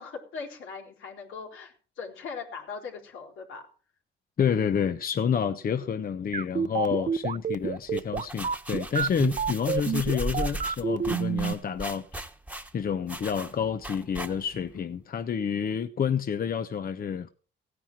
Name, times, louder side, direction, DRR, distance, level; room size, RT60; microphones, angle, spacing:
voice 1, 0.0-3.7, left 5 dB, 80° left, 4.3 m, -40 dB
voice 2, 4.4-12.3 12.7-17.3, left 7 dB, 45° left, 0.9 m, -29 dB
sound 1, 6.3-11.5, right 6 dB, 40° right, 0.8 m, -28 dB
sound 2, 7.8-14.7, right 2 dB, 5° right, 1.4 m, -37 dB
17.0 x 9.9 x 4.7 m
cardioid pair, 90°, 20 cm